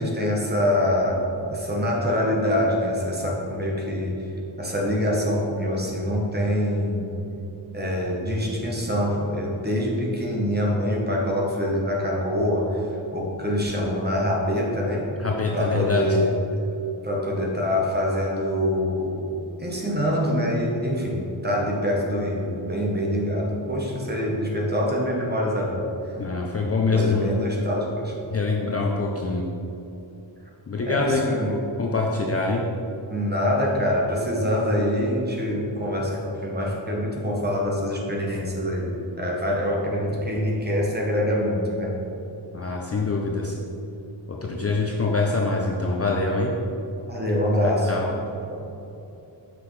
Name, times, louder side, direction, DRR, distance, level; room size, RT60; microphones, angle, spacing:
voice 1, 0.0-4.1 4.6-7.1 7.7-12.9 13.1-15.1 15.5-16.3 17.0-19.2 19.6-26.1 26.9-28.1 30.8-31.7 33.1-42.0 47.1-47.9 48.5-48.6, equal, 20° right, -3 dB, 1.0 m, -25 dB
voice 2, 15.2-16.2 26.2-27.3 28.3-29.5 30.7-31.2 31.8-32.6 42.5-43.6 44.3-46.5 47.6-48.1, left 3 dB, 35° left, -2 dB, 0.4 m, -24 dB
6.0 x 5.9 x 3.2 m, 2.9 s
wide cardioid pair, 175°, 46 cm